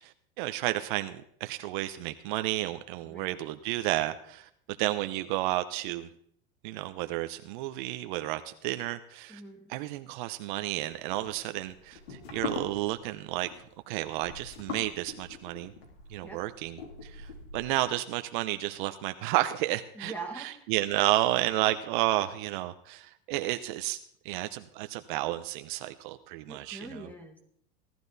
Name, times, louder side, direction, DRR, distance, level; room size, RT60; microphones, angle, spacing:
voice 1, 0.0-4.5 4.8-6.1 6.6-9.4 9.7-13.5 13.9-15.7 16.1-24.0 24.2-27.1, right 16 dB, 55° right, 9 dB, 0.8 m, -31 dB
voice 2, 3.0-3.3 9.3-9.7 16.2-16.4 19.9-20.7 26.5-27.4, right 3 dB, 5° left, 3 dB, 2.3 m, -42 dB
sound 1, 10.8-17.8, left 5 dB, 80° left, 4.2 m, -42 dB
17.0 x 12.5 x 4.1 m, 0.65 s
supercardioid pair, 145°, 30 cm